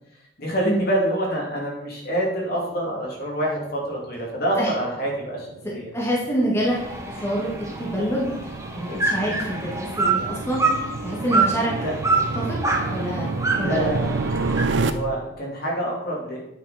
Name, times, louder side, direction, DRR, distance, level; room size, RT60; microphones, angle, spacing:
voice 1, 0.4-5.9 11.8-12.0 13.6-14.3 14.8-16.4, right 1 dB, 60° left, -2 dB, 2.6 m, -26 dB
sound 1, 3.8-14.9, right 3 dB, 85° right, 0.6 m, -30 dB
voice 2, 5.9-6.8 7.2-7.5 7.8-8.3 8.8-10.7 11.0-11.7 12.4-12.6 12.9-13.3 13.6-13.8, equal, 15° left, -5 dB, 1.9 m, -26 dB
sound 2, 6.7-14.6, right 3 dB, 15° right, 1.1 m, -26 dB
9.1 x 5.9 x 4.2 m, 0.82 s
head